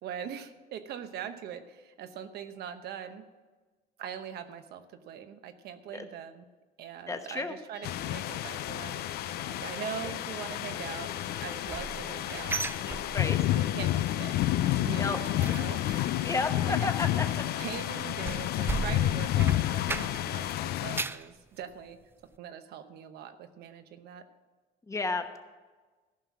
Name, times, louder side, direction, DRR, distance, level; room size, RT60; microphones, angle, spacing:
voice 1, 0.0-3.2 4.0-6.5 6.8-9.0 9.5-12.6 13.5-14.4 14.8-16.2 16.7-16.9 17.6-22.0 22.4-24.3, right 9 dB, 70° right, 9 dB, 0.9 m, -42 dB
voice 2, 7.1-7.6 13.1-13.4 15.0-15.2 15.4-15.5 16.2-17.4 24.9-25.4, left 3 dB, 20° left, 7 dB, 1.1 m, -32 dB
sound 1, 7.7-20.6, left 3 dB, 50° left, 1.3 m, -46 dB
sound 2, 7.8-21.0, left 14 dB, 70° left, 0.4 m, -30 dB
sound 3, 11.3-13.7 13.9-14.3 14.6-20.4 20.7-21.3 21.8-21.9 22.3-22.4, right 4 dB, 15° right, 0.4 m, -38 dB
14.5 x 5.6 x 7.4 m, 1.3 s
cardioid pair, 110°, 17 cm